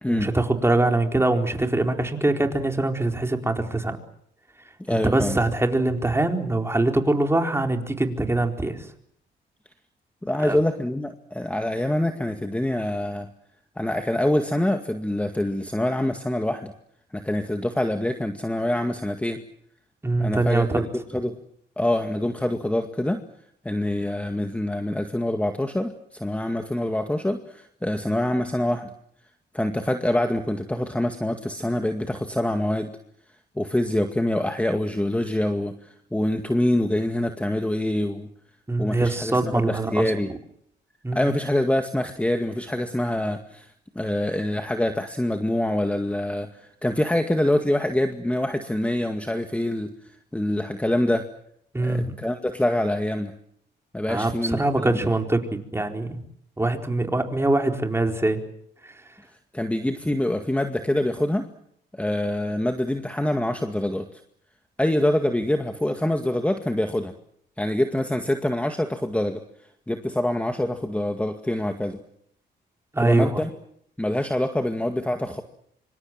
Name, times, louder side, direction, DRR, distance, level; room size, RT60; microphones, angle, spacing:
voice 1, 0.1-4.0 4.9-8.9 10.4-10.6 20.0-20.9 38.7-40.4 41.0-41.3 51.7-52.2 54.1-56.2 56.6-58.4 58.8-58.9 72.9-73.4, right 2 dB, 10° right, 4 dB, 4.4 m, -23 dB
voice 2, 4.8-5.4 10.2-13.3 13.8-16.7 17.1-19.4 20.2-21.3 21.8-23.2 23.6-28.9 29.5-32.9 33.6-38.3 38.8-40.3 41.1-43.7 44.0-49.9 50.3-51.2 51.8-53.3 53.9-54.9 59.5-61.5 61.9-64.2 64.8-67.1 67.6-69.4 69.9-72.0 73.0-73.5 74.0-75.4, left 1 dB, 5° left, 6 dB, 2.1 m, -25 dB
25.5 x 25.0 x 7.6 m, 0.69 s
cardioid pair, 90°, 20 cm